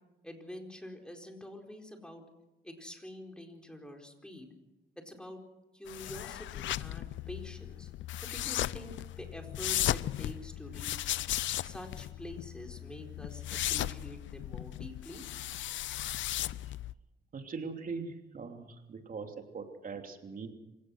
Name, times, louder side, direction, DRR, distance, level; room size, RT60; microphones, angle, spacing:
voice 1, 0.2-2.2 2.6-4.5 5.0-5.4 5.7-7.9 8.2-11.1 11.6-15.2, left 1 dB, 5° left, 2 dB, 4.4 m, -47 dB
sound 1, 5.9-16.9, left 13 dB, 75° left, 0.6 m, -36 dB
voice 2, 17.3-20.5, right 4 dB, 45° right, 4 dB, 3.0 m, -41 dB
26.5 x 17.0 x 6.4 m, 0.99 s
cardioid pair, 90°, 20 cm